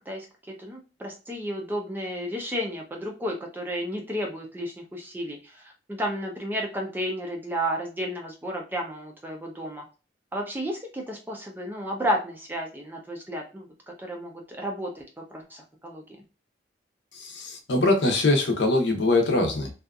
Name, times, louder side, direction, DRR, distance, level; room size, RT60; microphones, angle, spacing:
voice 1, 0.1-9.8 10.3-13.7 14.0-16.2, equal, 10° right, 1 dB, 0.5 m, -32 dB
voice 2, 17.1-19.8, left 2 dB, 70° left, 4 dB, 0.7 m, -23 dB
2.7 x 2.4 x 2.3 m, 0.33 s
head